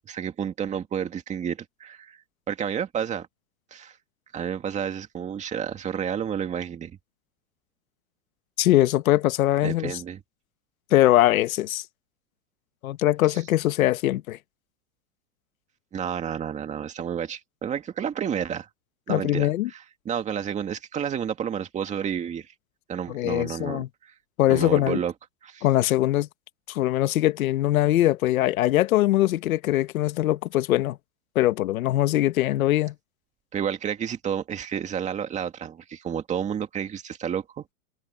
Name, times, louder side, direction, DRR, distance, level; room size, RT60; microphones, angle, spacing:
voice 1, 0.0-2.2 2.5-3.3 3.7-4.0 4.3-7.0 9.6-10.2 15.9-18.7 19.1-22.5 22.9-24.1 24.5-25.1 25.4-25.7 33.5-37.7, right 8 dB, 15° right, 2.1 m, -30 dB
voice 2, 8.6-9.9 10.9-11.8 12.8-14.4 19.1-19.7 23.1-23.9 24.4-25.0 25.6-26.3 26.7-31.0 31.3-32.9, left 14 dB, 75° left, 1.4 m, -22 dB
supercardioid pair, 165°, 42 cm